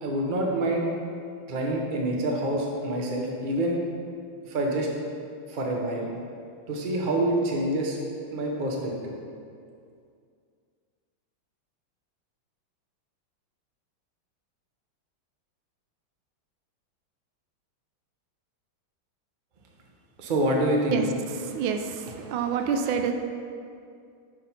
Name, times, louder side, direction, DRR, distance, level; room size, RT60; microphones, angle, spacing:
voice 1, 0.0-0.9 1.5-3.8 4.4-4.9 5.5-6.1 6.7-8.0 8.3-9.1 20.2-21.0, right 1 dB, 55° right, -1 dB, 0.5 m, -26 dB
voice 2, 21.4-23.1, right 7 dB, 80° right, 6 dB, 1.3 m, -27 dB
5.8 x 5.0 x 5.6 m, 2.3 s
omnidirectional pair, 2.2 m